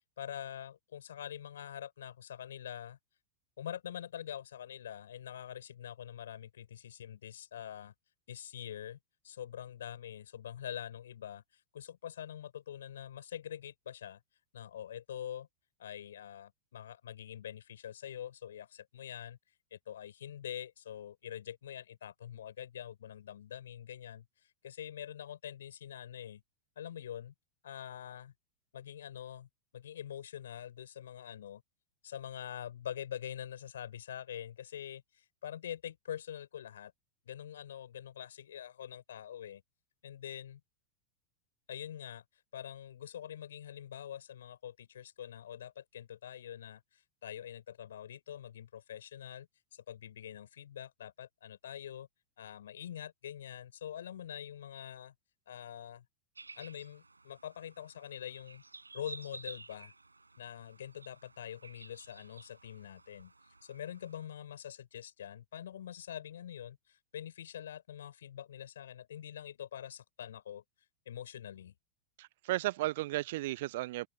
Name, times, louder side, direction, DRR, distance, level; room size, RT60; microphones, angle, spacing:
voice 1, 0.2-3.0 3.6-7.9 8.3-9.0 9.2-11.4 11.7-14.2 14.5-15.5 15.8-19.4 19.7-24.3 24.6-26.4 26.8-27.3 27.6-28.3 28.7-29.5 29.7-31.6 32.0-36.9 37.2-39.6 40.0-40.6 41.7-42.2 42.5-52.1 52.4-55.1 55.5-56.0 56.6-58.6 58.9-59.9 60.4-63.3 63.6-70.6 71.1-71.7, left 10 dB, 65° left, 7.7 m, -45 dB
sound 1, 56.4-64.3, right 3 dB, 80° right, 7.5 m, -53 dB
voice 2, 72.2-74.1, right 17 dB, 55° right, 1.0 m, -34 dB
open air
figure-of-eight pair, 90°, 0 cm